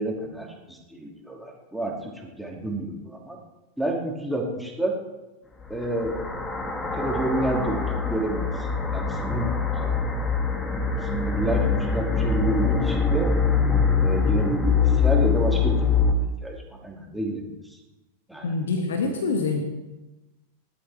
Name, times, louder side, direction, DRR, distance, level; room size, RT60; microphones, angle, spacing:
voice 1, 0.0-3.4 3.8-5.0 5.7-6.2 7.0-9.9 11.0-13.3 14.0-16.6 16.8-17.8 18.3-18.5 19.0-19.2, right 1 dB, ahead, -1 dB, 2.7 m, -30 dB
sound 1, 5.6-16.1, left 5 dB, 15° left, 1.9 m, -24 dB
voice 2, 18.4-19.6, left 4 dB, 65° left, 4 dB, 1.6 m, -25 dB
20.0 x 12.0 x 3.6 m, 1.1 s
figure-of-eight pair, 90°, 0 cm